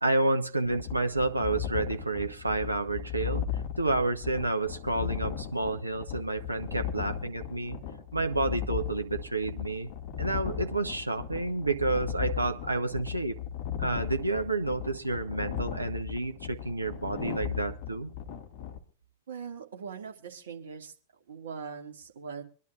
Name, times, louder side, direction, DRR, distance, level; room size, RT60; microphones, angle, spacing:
voice 1, 0.0-7.8 8.1-9.9 10.2-13.4 13.8-18.1, right 2 dB, 85° right, 7 dB, 1.0 m, -30 dB
sound 1, 0.6-18.8, left 9 dB, 45° left, 2.1 m, -37 dB
voice 2, 19.3-20.9 21.3-22.4, right 6 dB, 65° right, 3 dB, 2.1 m, -41 dB
25.5 x 11.0 x 2.4 m, 0.39 s
figure-of-eight pair, 90°, 0 cm